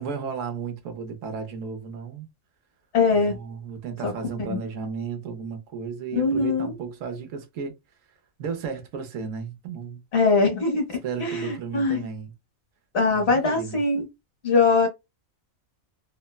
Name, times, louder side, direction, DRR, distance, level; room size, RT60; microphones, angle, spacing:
voice 1, 0.0-2.3 3.1-7.8 8.4-10.0 11.0-12.3 13.1-13.8, right 6 dB, 70° right, 1.0 m, -34 dB
voice 2, 2.9-3.4 4.0-4.1 4.5-4.6 6.1-6.7 10.1-12.0 12.9-14.1 14.4-14.9, left 4 dB, 55° left, 1.0 m, -22 dB
3.1 x 2.1 x 2.2 m
omnidirectional pair, 1.5 m